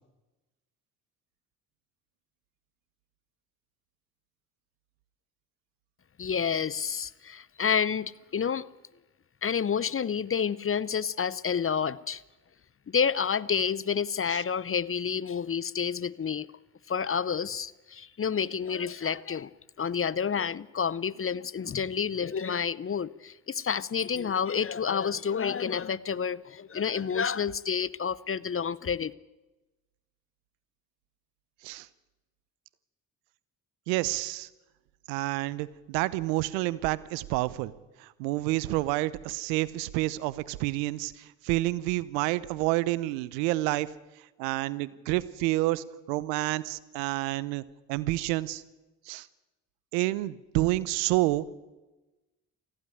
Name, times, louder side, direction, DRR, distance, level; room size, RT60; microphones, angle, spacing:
voice 1, 6.2-8.7 9.4-12.2 12.9-16.5 16.9-19.5 19.8-29.1, left 7 dB, 25° left, 0.7 m, -29 dB
voice 2, 33.9-34.5 35.1-37.7 38.0-43.9 44.4-47.6 47.9-48.6 49.1-49.3 49.9-51.4, right 18 dB, 80° right, 0.8 m, -29 dB
18.5 x 15.0 x 9.2 m
hypercardioid pair, 50°, 49 cm